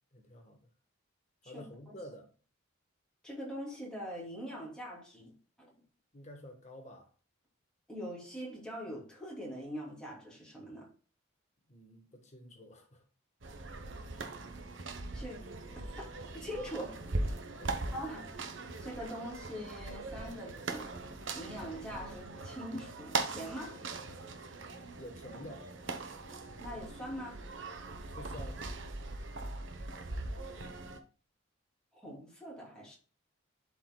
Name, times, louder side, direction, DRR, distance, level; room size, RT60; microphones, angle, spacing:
voice 1, 0.1-0.7 1.4-2.3 6.1-7.1 11.7-13.0 13.8-13.9 17.6-17.9 24.8-25.7 28.2-28.6, left 1 dB, 35° left, 1.3 m, -50 dB
voice 2, 1.4-1.9 3.2-5.7 7.9-10.9 15.1-15.5 16.3-17.1 17.9-18.3 18.8-21.0 21.3-23.8 26.6-27.4 31.9-33.0, equal, 5° left, 2.8 m, -43 dB
sound 1, 13.4-31.0, right 3 dB, 60° right, 0.9 m, -40 dB
11.5 x 4.8 x 2.2 m
head